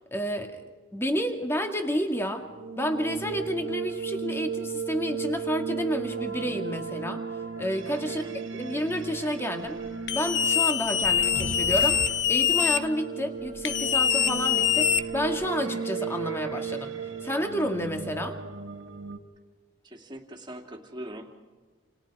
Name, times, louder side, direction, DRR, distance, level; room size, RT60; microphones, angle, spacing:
voice 1, 0.1-0.6 0.9-2.4 2.8-7.2 7.6-8.2 8.5-9.8 10.1-12.0 12.3-17.0 17.2-18.4, equal, 10° left, 4 dB, 2.2 m, -30 dB
sound 1, 2.4-19.2, right 6 dB, 80° right, 1.8 m, -35 dB
voice 2, 8.0-8.4 19.8-21.4, right 1 dB, 25° right, 2 dB, 2.8 m, -42 dB
sound 2, 10.1-12.8 13.6-15.4, left 9 dB, 60° left, 1.2 m, -24 dB
sound 3, 11.0-12.7, left 3 dB, 45° left, 0.7 m, -38 dB
29.5 x 29.0 x 4.9 m, 1.3 s
head